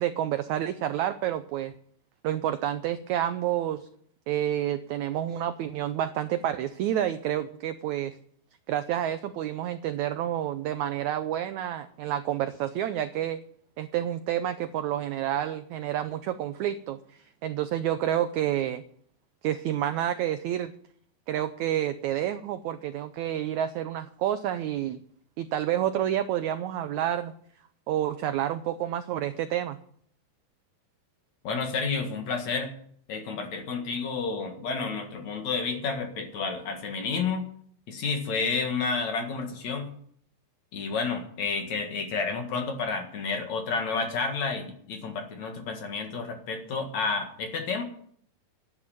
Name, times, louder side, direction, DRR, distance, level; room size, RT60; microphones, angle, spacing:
voice 1, 0.0-1.7 2.2-3.9 4.3-8.2 8.7-13.4 13.8-18.8 19.4-20.7 21.3-25.0 25.4-27.3 27.9-29.8, right 11 dB, 85° right, 10 dB, 1.6 m, -29 dB
voice 2, 31.4-32.7 33.1-37.5 37.9-39.9 40.7-47.8, left 4 dB, 55° left, 4 dB, 2.9 m, -30 dB
11.5 x 9.8 x 9.0 m, 0.62 s
omnidirectional pair, 4.1 m